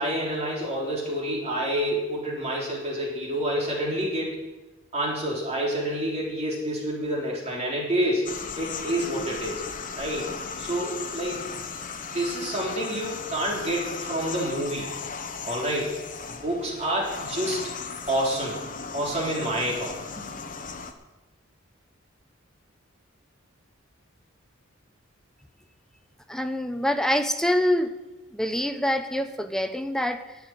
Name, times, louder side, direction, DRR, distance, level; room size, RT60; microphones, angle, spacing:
voice 1, 0.0-4.4 4.9-9.6 10.0-10.3 10.6-11.4 12.0-14.9 15.4-16.0 16.4-17.6 18.1-18.6 18.9-20.3, right 1 dB, 35° right, -3 dB, 3.7 m, -28 dB
sound 1, 8.3-20.9, left 5 dB, 40° left, 1.0 m, -36 dB
voice 2, 26.3-27.9 28.3-30.4, left 1 dB, 5° left, 7 dB, 0.8 m, -25 dB
11.5 x 8.5 x 9.1 m, 1.1 s
head